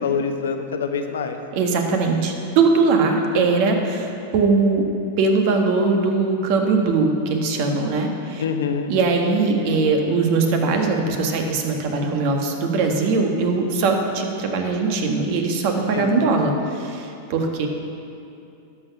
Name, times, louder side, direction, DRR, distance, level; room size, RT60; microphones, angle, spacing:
voice 1, 0.0-1.4 8.4-8.9 15.9-16.1, left 6 dB, 90° left, 6 dB, 0.9 m, -25 dB
voice 2, 1.5-4.8 5.2-8.4 8.9-17.7, right 4 dB, 55° right, 3 dB, 1.5 m, -21 dB
12.5 x 6.1 x 6.0 m, 2.6 s
hypercardioid pair, 120°, 0 cm